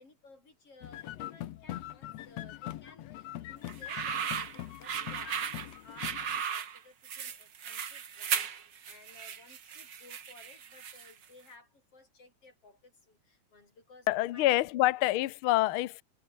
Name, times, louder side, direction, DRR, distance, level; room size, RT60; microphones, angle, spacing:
voice 1, 0.0-15.1, left 3 dB, 50° left, 7.8 m, -57 dB
sound 1, 0.8-6.4, left 14 dB, 65° left, 1.8 m, -42 dB
sound 2, 3.7-11.2, right 7 dB, 45° right, 1.8 m, -36 dB
voice 2, 14.1-16.0, left 16 dB, 85° left, 1.2 m, -26 dB
omnidirectional pair, 3.4 m